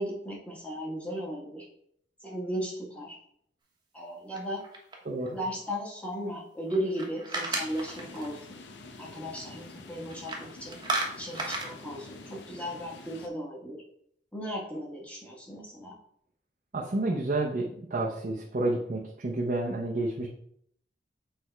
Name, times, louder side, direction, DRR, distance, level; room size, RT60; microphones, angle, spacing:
voice 1, 0.0-1.7 2.2-3.2 3.9-4.6 5.3-8.6 9.0-10.8 11.2-13.8 14.3-15.9, equal, 10° left, -3 dB, 1.4 m, -36 dB
sound 1, 4.3-5.3 6.7-8.3 10.1-10.4 10.7-11.7, right 2 dB, 25° right, 1.1 m, -33 dB
voice 2, 5.0-5.4 16.7-20.3, right 2 dB, 45° right, -1 dB, 0.7 m, -30 dB
sound 2, 7.5-13.3, left 3 dB, 75° left, 0.7 m, -47 dB
6.4 x 3.4 x 4.5 m, 0.69 s
head